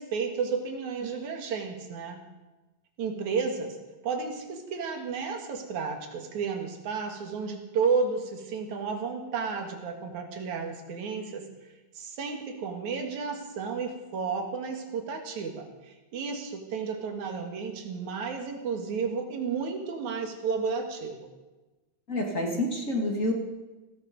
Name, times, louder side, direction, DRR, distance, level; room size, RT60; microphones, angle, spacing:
voice 1, 0.0-2.2 3.0-3.8 4.0-11.5 11.9-21.2, right 5 dB, 75° right, 3 dB, 3.3 m, -32 dB
voice 2, 22.1-23.3, left 1 dB, 30° left, 1 dB, 2.2 m, -28 dB
16.5 x 16.0 x 5.3 m, 1.1 s
omnidirectional pair, 3.4 m